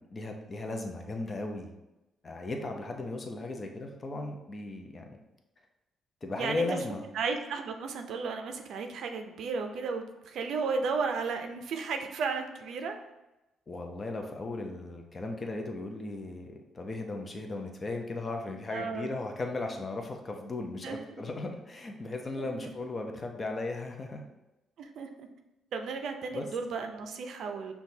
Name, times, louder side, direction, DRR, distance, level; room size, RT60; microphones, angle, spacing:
voice 1, 0.0-1.7 2.2-5.2 6.2-7.0 13.7-24.2 26.3-26.5, left 2 dB, 35° left, 3 dB, 0.6 m, -36 dB
voice 2, 6.4-6.8 7.1-13.0 18.7-19.1 20.8-21.0 22.4-22.5 24.8-25.3 25.7-27.7, right 5 dB, 70° right, 5 dB, 0.4 m, -34 dB
5.8 x 2.3 x 2.7 m, 0.98 s
cardioid pair, 90°, 0 cm